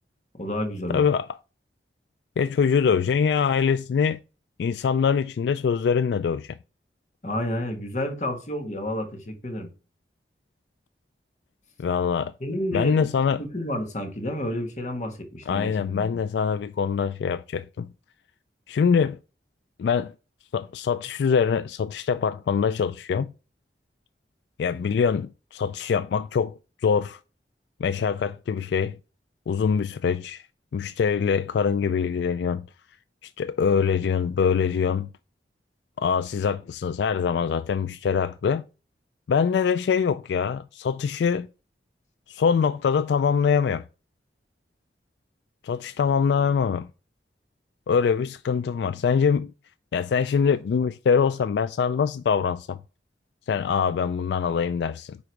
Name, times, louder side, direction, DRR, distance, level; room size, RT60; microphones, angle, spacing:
voice 1, 0.4-1.0 7.2-9.7 12.4-13.1 13.4-16.1, left 1 dB, 40° left, 1.5 m, -30 dB
voice 2, 0.9-1.4 2.4-4.2 4.6-6.6 11.8-12.3 12.7-13.4 15.5-17.9 18.7-19.2 19.8-20.1 20.5-23.3 24.6-27.2 27.8-29.0 29.5-30.5 30.7-32.7 33.2-35.1 36.0-38.6 39.3-41.5 42.3-43.8 45.6-46.9 47.9-49.5 49.9-52.8 53.5-55.2, left 6 dB, 80° left, 0.3 m, -24 dB
9.7 x 3.9 x 4.6 m
head